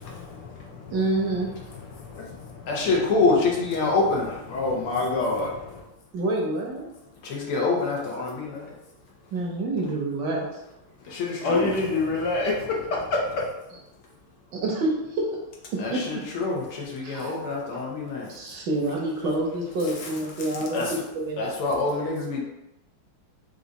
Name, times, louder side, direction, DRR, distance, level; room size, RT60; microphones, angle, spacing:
voice 1, 0.0-2.9 4.5-5.8 11.4-13.5, left 3 dB, 65° left, -2 dB, 1.2 m, -28 dB
voice 2, 0.9-1.5 6.1-6.9 9.3-10.5 14.5-15.3 15.7-16.0 17.0-17.3 18.3-21.0 21.3-21.4, right 2 dB, 65° right, -1 dB, 1.3 m, -27 dB
voice 3, 2.7-4.4 7.2-8.7 11.0-11.7 15.8-18.6 19.8-21.0 21.4-22.4, left 3 dB, 85° left, -2 dB, 1.9 m, -26 dB
5.0 x 2.5 x 3.9 m, 0.91 s
omnidirectional pair, 2.3 m